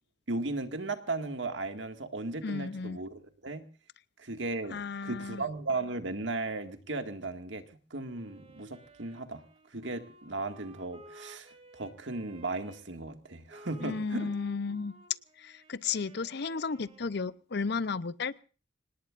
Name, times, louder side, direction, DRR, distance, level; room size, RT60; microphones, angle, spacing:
voice 1, 0.3-3.6 4.2-7.6 7.9-9.4 9.7-14.3, right 2 dB, 75° right, 7 dB, 1.9 m, -36 dB
voice 2, 2.4-3.0 4.7-5.4 13.8-14.9 15.4-18.4, left 4 dB, 65° left, 17 dB, 0.7 m, -34 dB
Wind instrument woodwind instrument, 8.1-12.8 13.5-17.4, right 1 dB, 30° right, 2.3 m, -55 dB
26.5 x 19.0 x 2.5 m, 0.37 s
head